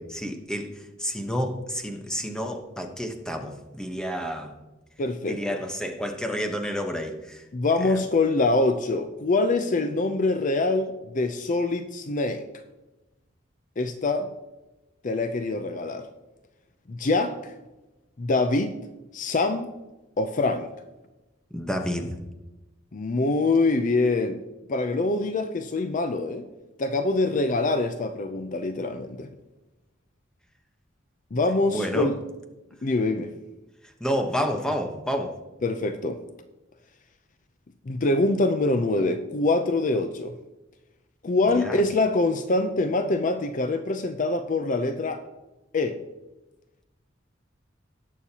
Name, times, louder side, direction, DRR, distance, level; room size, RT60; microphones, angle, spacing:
voice 1, 0.0-4.6 5.3-7.4 7.8-8.0 21.5-22.2 31.7-32.1 33.8-35.4 41.4-41.8, equal, 5° left, 4 dB, 1.0 m, -30 dB
voice 2, 5.0-5.6 7.5-12.5 13.8-14.3 15.0-16.1 16.9-17.5 18.2-18.7 19.1-19.7 20.2-20.7 22.9-24.4 24.7-26.4 26.8-29.3 31.3-32.2 32.8-33.3 35.6-36.2 37.9-40.3 41.2-45.2 45.7-46.0, left 2 dB, 40° left, 8 dB, 0.5 m, -24 dB
18.5 x 6.4 x 2.8 m, 1.0 s
head